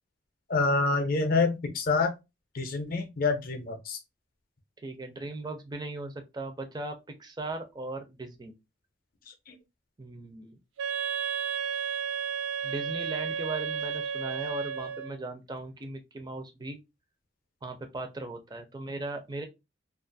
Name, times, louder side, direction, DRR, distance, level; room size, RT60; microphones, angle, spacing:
voice 1, 0.5-2.1 2.5-4.0 9.5-9.6, left 3 dB, 50° left, 0.5 m, -27 dB
voice 2, 4.8-6.9 7.2-8.5 10.0-10.6 12.6-16.8 17.6-19.4, right 2 dB, 20° right, 0.4 m, -38 dB
Wind instrument woodwind instrument, 10.8-15.2, right 7 dB, 85° right, 0.5 m, -32 dB
2.4 x 2.4 x 2.5 m
head